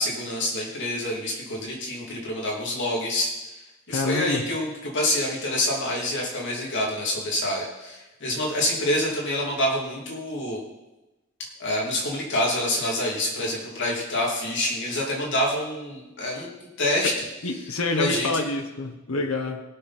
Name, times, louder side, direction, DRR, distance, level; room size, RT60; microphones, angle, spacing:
voice 1, 0.0-3.6 3.9-10.6 11.6-16.5 16.8-17.1 17.9-18.3, left 1 dB, 60° left, -2 dB, 2.9 m, -27 dB
voice 2, 3.9-4.4 16.4-16.5 17.0-17.2 17.4-19.6, left 2 dB, 75° left, 4 dB, 1.2 m, -27 dB
20.0 x 6.7 x 4.3 m, 1.0 s
head